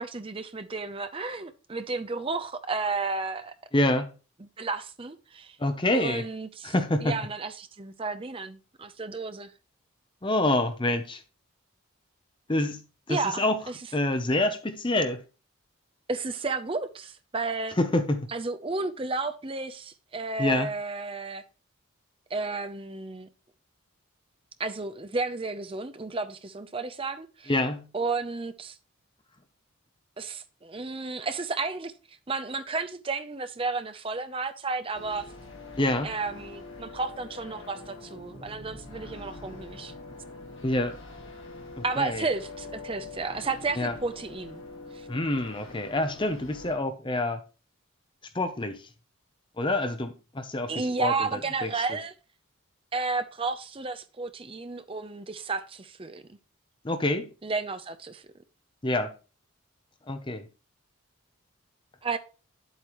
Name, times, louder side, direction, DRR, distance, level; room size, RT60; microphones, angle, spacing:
voice 1, 0.0-3.5 4.4-5.6 5.9-6.7 7.0-9.5 13.1-13.8 16.1-17.8 18.3-21.4 22.3-23.3 24.6-27.5 27.9-28.8 30.2-35.3 36.0-39.9 41.8-44.6 44.9-45.1 50.7-52.1 52.9-56.4 57.4-58.3 62.0-62.2, right 3 dB, 25° right, 0.6 m, -32 dB
voice 2, 3.7-4.1 5.6-6.2 6.6-7.2 10.2-11.2 12.5-12.8 13.1-13.6 13.9-15.2 17.8-18.3 20.4-20.7 27.5-27.9 35.8-36.1 40.6-41.0 41.8-42.3 43.8-43.9 45.1-47.4 48.3-48.8 49.6-50.7 51.0-51.1 51.6-51.7 56.8-57.3 58.8-59.1 60.1-60.4, left 1 dB, 25° left, 0.7 m, -26 dB
sound 1, 34.9-46.7, left 3 dB, 65° left, 2.2 m, -44 dB
9.4 x 8.0 x 3.0 m
head